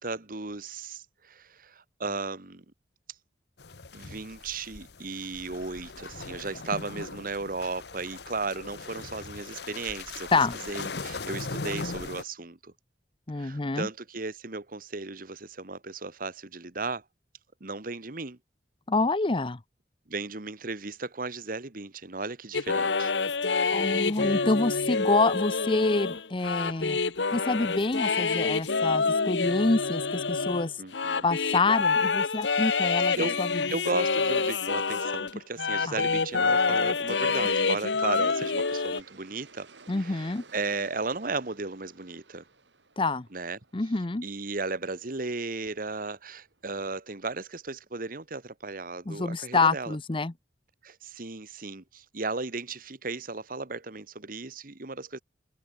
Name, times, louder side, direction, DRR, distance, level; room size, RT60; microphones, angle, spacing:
voice 1, 0.0-2.6 3.9-10.3 10.7-12.7 13.3-17.0 17.6-18.4 20.1-23.1 30.8-31.3 33.2-33.4 33.7-39.7 39.9-42.4 43.3-43.6 44.2-50.0 50.8-55.2, right 3 dB, 50° right, 1.5 m, -35 dB
sound 1, 3.6-12.2, left 3 dB, 65° left, 1.2 m, -39 dB
voice 2, 13.3-13.9 18.9-19.6 23.7-27.0 27.3-30.7 31.2-33.6 35.9-36.0 39.9-40.4 43.0-43.3 43.7-44.2 49.1-50.3, left 3 dB, 30° left, 0.7 m, -27 dB
sound 2, 22.5-35.3 35.6-39.0, left 4 dB, 90° left, 1.3 m, -27 dB
Aircraft, 36.5-47.2, right 4 dB, 90° right, 4.9 m, -57 dB
head